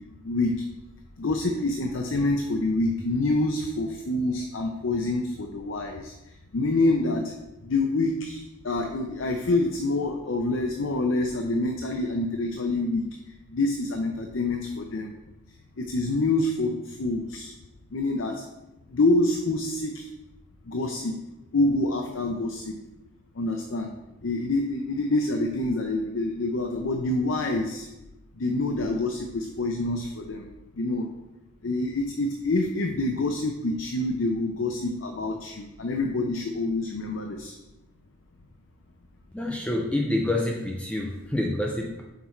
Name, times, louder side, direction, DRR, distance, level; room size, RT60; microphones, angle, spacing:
voice 1, 1.2-6.1 6.5-7.3 7.6-13.0 13.5-15.1 15.8-17.5 17.9-18.3 18.9-20.1 20.7-21.1 21.5-22.7 23.4-23.9 24.2-27.9 28.4-30.4 30.8-31.1 31.6-37.5, left 2 dB, 65° left, 3 dB, 0.6 m, -26 dB
voice 2, 39.3-42.0, left 1 dB, 5° left, -1 dB, 0.4 m, -27 dB
5.9 x 4.1 x 4.5 m, 0.98 s
head